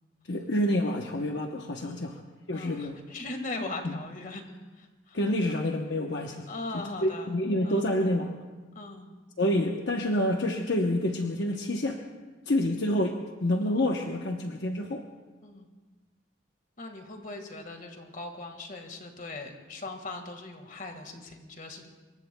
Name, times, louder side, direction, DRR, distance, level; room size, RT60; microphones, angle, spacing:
voice 1, 0.3-2.2 2.5-3.0 3.8-4.0 5.1-6.5 7.0-8.4 9.4-12.0 12.5-15.0, left 1 dB, 65° left, 2 dB, 0.9 m, -28 dB
voice 2, 2.5-4.4 4.7-5.6 6.5-7.4 7.6-7.9 8.7-9.2 12.5-12.7 15.4-15.7 16.8-21.9, left 2 dB, 45° left, 4 dB, 1.8 m, -40 dB
26.5 x 22.5 x 2.3 m, 1.3 s
head